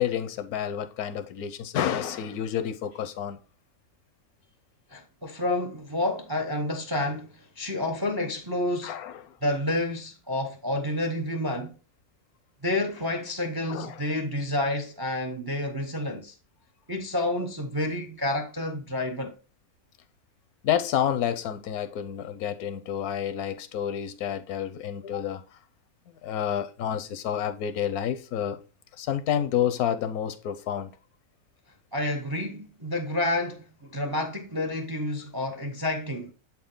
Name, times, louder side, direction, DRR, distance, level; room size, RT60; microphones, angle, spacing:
voice 1, 0.0-3.4 8.8-9.4 13.7-14.0 20.6-25.4 26.2-28.6 29.0-30.9, left 9 dB, 80° left, 1.2 m, -29 dB
voice 2, 4.9-8.9 9.4-11.7 12.6-16.3 16.9-19.3 31.9-36.3, left 1 dB, 30° right, 0.4 m, -29 dB
7.5 x 4.4 x 3.7 m
omnidirectional pair, 1.6 m